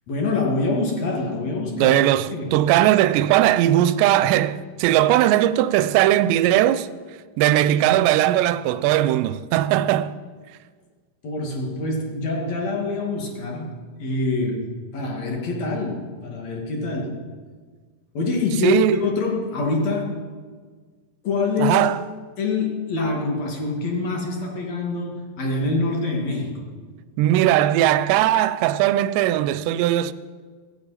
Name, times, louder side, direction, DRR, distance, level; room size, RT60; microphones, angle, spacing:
voice 1, 0.1-2.0 2.3-2.6 11.2-17.2 18.1-20.2 21.2-21.8 22.4-26.7, left 3 dB, 50° left, 2.6 m, -25 dB
voice 2, 1.8-6.9 7.4-10.1 18.6-19.0 21.6-22.0 27.2-30.1, right 13 dB, 85° right, 2.8 m, -19 dB
16.5 x 15.5 x 4.1 m
omnidirectional pair, 5.0 m